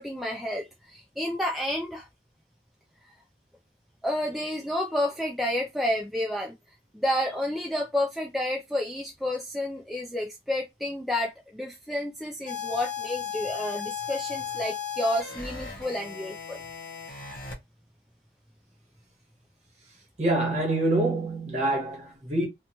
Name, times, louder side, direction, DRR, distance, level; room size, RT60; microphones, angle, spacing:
voice 1, 0.0-2.1 4.0-6.5 6.9-16.6, left 1 dB, ahead, 0.3 m, -30 dB
sound 1, 12.5-17.5, left 7 dB, 50° left, 0.8 m, -35 dB
voice 2, 20.2-22.5, right 2 dB, 40° right, 1.1 m, -26 dB
2.9 x 2.2 x 2.6 m
head